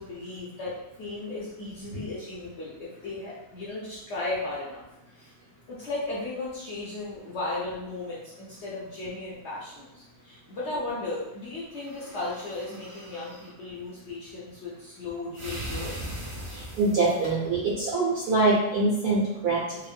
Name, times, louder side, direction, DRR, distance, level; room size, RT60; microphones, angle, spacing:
voice 1, 0.0-5.3 5.7-15.9, left 2 dB, 65° left, -7 dB, 0.7 m, -36 dB
sound 1, 11.7-13.5 15.3-17.3, equal, 50° right, 0.6 m, -39 dB
voice 2, 16.4-19.8, right 3 dB, 80° right, -7 dB, 1.2 m, -24 dB
2.9 x 2.1 x 2.4 m, 0.92 s
omnidirectional pair, 1.7 m